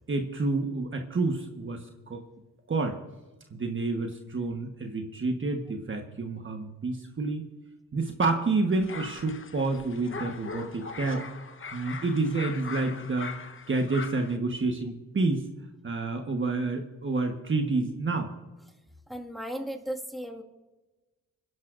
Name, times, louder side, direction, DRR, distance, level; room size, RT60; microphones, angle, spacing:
voice 1, 0.1-2.2 2.7-3.0 3.5-7.5 7.9-11.2 11.7-13.4 13.7-15.4 15.8-18.3, right 3 dB, 35° right, 4 dB, 1.3 m, -29 dB
sound 1, 8.7-14.4, left 4 dB, 40° left, 1.1 m, -40 dB
voice 2, 19.1-20.4, equal, ahead, 0 dB, 1.9 m, -35 dB
28.0 x 11.0 x 2.6 m, 1.1 s
cardioid pair, 80°, 33 cm